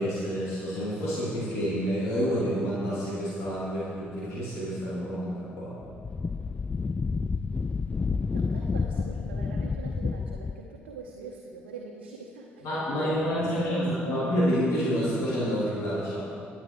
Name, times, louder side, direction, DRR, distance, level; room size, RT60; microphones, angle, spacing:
voice 1, 0.0-5.7 12.6-16.2, equal, 65° left, -9 dB, 3.0 m, -28 dB
Wind, 5.8-10.6, left 4 dB, 25° left, 0.3 m, -30 dB
voice 2, 8.3-14.2, right 4 dB, 80° right, -2 dB, 0.9 m, -42 dB
21.5 x 8.1 x 3.1 m, 2.3 s
figure-of-eight pair, 50°, 6 cm